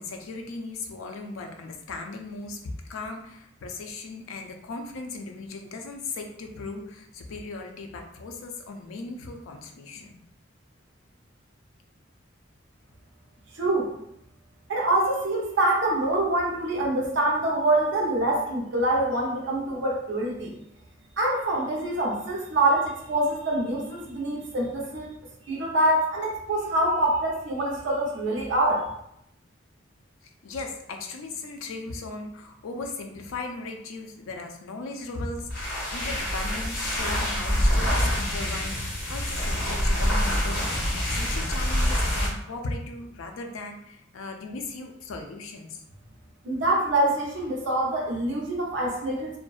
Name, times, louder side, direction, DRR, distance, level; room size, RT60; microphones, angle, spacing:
voice 1, 0.0-10.2 16.8-16.9 30.2-45.8, left 3 dB, 90° left, 4 dB, 0.4 m, -37 dB
voice 2, 13.5-13.9 14.7-20.5 21.2-25.1 25.4-28.8 46.4-49.3, right 1 dB, 60° right, -2 dB, 0.5 m, -25 dB
sound 1, 35.4-42.4, equal, 45° left, 0.8 m, -26 dB
2.5 x 2.1 x 2.3 m, 0.77 s
head